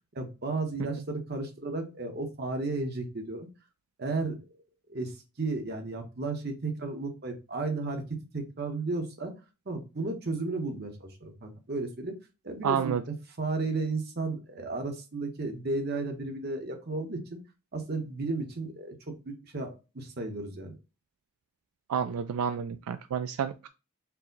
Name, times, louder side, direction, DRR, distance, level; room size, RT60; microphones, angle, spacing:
voice 1, 0.1-3.5 4.0-4.4 4.9-5.1 5.4-8.0 8.3-9.3 9.7-12.1 12.4-17.4 17.7-20.7, right 3 dB, 45° right, 4 dB, 0.9 m, -33 dB
voice 2, 12.6-13.0 21.9-23.7, right 7 dB, 80° right, 10 dB, 0.3 m, -30 dB
4.6 x 2.1 x 3.8 m, 0.29 s
head